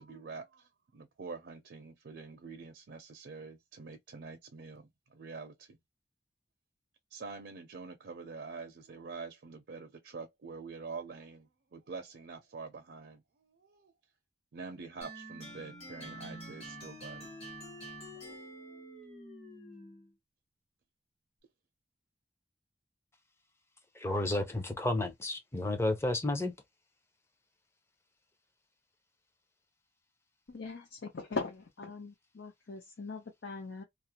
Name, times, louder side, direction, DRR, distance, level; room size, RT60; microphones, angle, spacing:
voice 1, 0.0-5.8 7.1-13.9 14.5-17.3 18.1-18.8, right 4 dB, 70° right, 0.5 m, -46 dB
sound 1, 15.0-20.1, right 1 dB, 35° left, 1.2 m, -47 dB
voice 2, 24.0-26.5, left 2 dB, 15° left, 0.5 m, -31 dB
voice 3, 30.5-33.8, left 3 dB, 85° left, 0.7 m, -40 dB
2.4 x 2.1 x 2.8 m
head